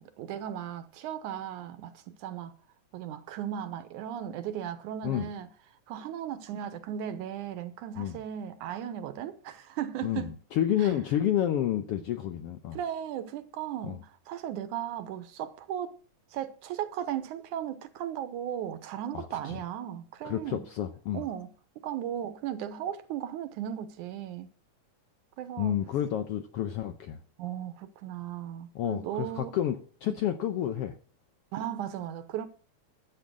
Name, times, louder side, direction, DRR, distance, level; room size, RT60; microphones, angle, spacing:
voice 1, 0.0-2.5 2.9-5.5 5.9-10.4 10.8-10.9 12.7-16.0 16.3-20.7 21.1-21.5 21.8-24.5 25.4-25.8 27.4-29.6 31.5-32.5, right 10 dB, 80° right, 2.3 m, -36 dB
voice 2, 10.0-12.8 13.8-14.0 19.1-19.6 20.2-21.2 25.6-27.2 28.7-31.0, left 11 dB, 85° left, 1.3 m, -30 dB
12.5 x 8.0 x 6.2 m
omnidirectional pair, 3.6 m